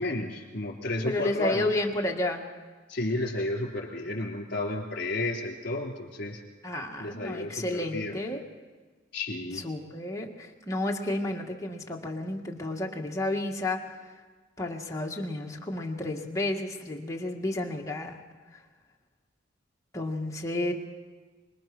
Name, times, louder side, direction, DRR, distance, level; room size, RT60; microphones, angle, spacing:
voice 1, 0.0-1.7 2.9-6.4 7.0-8.2 9.1-9.6, left 2 dB, 55° left, 0 dB, 3.6 m, -32 dB
voice 2, 1.0-2.4 6.6-8.4 9.5-14.1 14.6-18.2 18.5-18.6 19.9-20.7, left 1 dB, 15° left, 0 dB, 1.9 m, -31 dB
25.5 x 21.0 x 6.1 m, 1.4 s
head